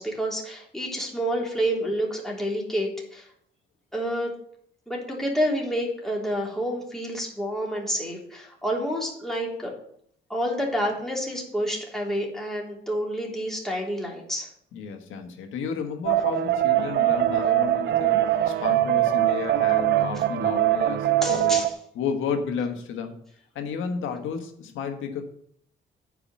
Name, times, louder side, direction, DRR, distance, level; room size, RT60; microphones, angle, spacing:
voice 1, 0.0-3.3 3.9-4.3 4.9-9.7 10.3-14.5 21.2-21.6, equal, ahead, -3 dB, 3.3 m, -28 dB
voice 2, 14.7-21.6 21.9-23.2 23.5-25.2, left 6 dB, 85° left, 6 dB, 1.5 m, -32 dB
sound 1, 16.1-21.7, right 13 dB, 60° right, 0.6 m, -22 dB
9.9 x 4.9 x 7.5 m, 0.67 s
cardioid pair, 90°, 20 cm